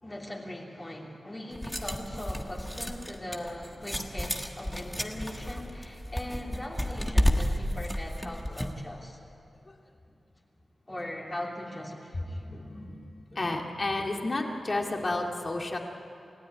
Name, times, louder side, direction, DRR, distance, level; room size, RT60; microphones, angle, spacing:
voice 1, 0.0-9.2 10.9-12.4, left 1 dB, 20° left, -1 dB, 2.9 m, -40 dB
sound 1, 1.5-8.8, equal, 5° left, 1.5 m, -31 dB
voice 2, 12.3-15.8, left 2 dB, 35° left, 1 dB, 2.3 m, -32 dB
29.0 x 16.5 x 9.6 m, 2.7 s
wide cardioid pair, 150°, 0 cm